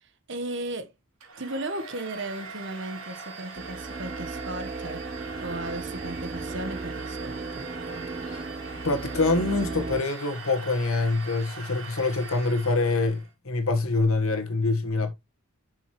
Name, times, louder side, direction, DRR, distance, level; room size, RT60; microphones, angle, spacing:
voice 1, 0.0-0.9 1.4-5.0 5.4-8.1, right 1 dB, 55° right, 1.3 m, -36 dB
Domestic sounds home sounds, 1.2-13.3, right 4 dB, 75° right, 3.4 m, -41 dB
sound 1, 3.5-10.0, right 3 dB, 30° right, 0.4 m, -36 dB
voice 2, 8.8-15.1, left 3 dB, 75° left, 1.5 m, -25 dB
8.2 x 6.3 x 3.1 m
head